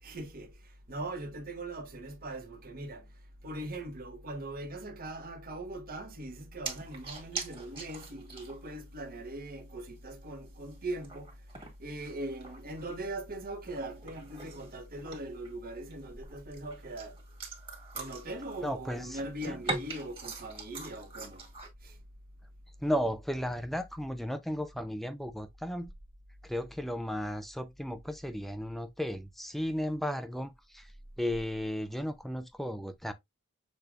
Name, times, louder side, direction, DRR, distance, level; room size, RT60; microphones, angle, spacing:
voice 1, 0.0-3.1 3.4-11.4 11.8-17.2 17.9-21.5 21.8-22.0, right 1 dB, 45° right, 1.3 m, -40 dB
sound 1, 6.6-8.8 9.0-9.1 9.6-9.7 10.3-13.0 13.3-15.5 15.9-18.9 19.1-21.7, right 3 dB, 25° right, 1.9 m, -42 dB
voice 2, 18.6-19.2 19.5-19.8 22.8-25.9 26.4-30.9 31.2-33.1, equal, ahead, 0.5 m, -34 dB
6.8 x 3.2 x 2.4 m
head